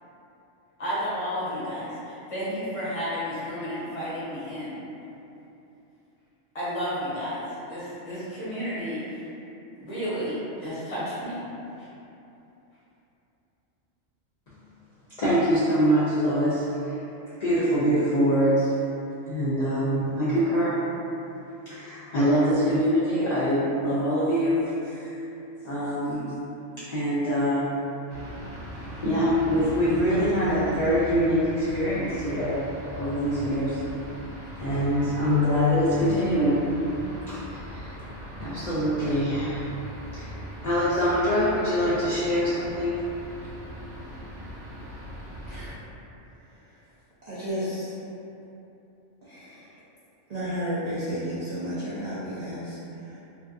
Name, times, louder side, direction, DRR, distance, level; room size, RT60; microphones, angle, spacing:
voice 1, 0.8-4.8 6.5-9.2 9.8-11.4 11.8-11.9, equal, 30° left, -12 dB, 0.8 m, -32 dB
voice 2, 15.2-16.9 17.4-18.7 19.3-20.8 21.7-25.1 25.6-26.3 26.8-27.7 29.0-33.8 34.5-36.7 37.3-37.9 38.4-39.7 40.1-40.3 40.6-43.0, equal, 60° left, -11 dB, 0.4 m, -24 dB
sound 1, 28.1-45.7, equal, 75° right, 0.9 m, -39 dB
voice 3, 45.5-45.8 47.2-47.9 49.2-49.7 50.3-53.2, equal, 55° right, -11 dB, 0.4 m, -32 dB
2.5 x 2.3 x 2.5 m, 2.9 s
omnidirectional pair, 1.3 m